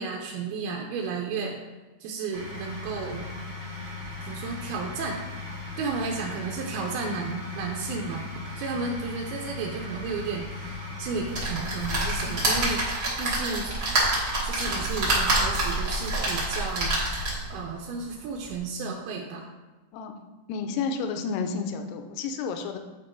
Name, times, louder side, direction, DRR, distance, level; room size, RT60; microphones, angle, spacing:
voice 1, 0.0-1.6 2.0-3.2 4.3-5.2 5.8-8.3 8.6-12.9 13.2-13.7 14.4-17.0 17.5-19.5, right 4 dB, 80° right, 0 dB, 2.4 m, -33 dB
sound 1, 2.3-12.7, left 3 dB, 65° right, 1.0 m, -38 dB
sound 2, 11.3-17.5 18.1-18.2 18.4-18.5, right 1 dB, 45° right, 1.3 m, -26 dB
voice 2, 20.5-22.8, left 5 dB, 85° left, 6 dB, 2.7 m, -31 dB
8.6 x 4.5 x 4.4 m, 1.1 s
omnidirectional pair, 4.8 m